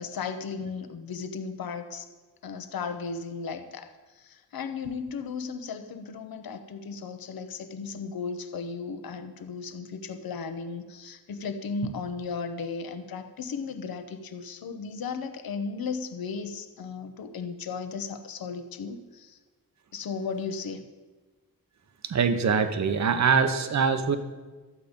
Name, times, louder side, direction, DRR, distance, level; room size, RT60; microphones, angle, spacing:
voice 1, 0.0-2.1 2.4-3.9 4.1-19.4 19.9-20.9, left 5 dB, 75° left, 0.9 m, -35 dB
voice 2, 22.0-24.2, right 6 dB, 50° right, 0.8 m, -23 dB
12.0 x 8.1 x 5.2 m
wide cardioid pair, 160°, 36 cm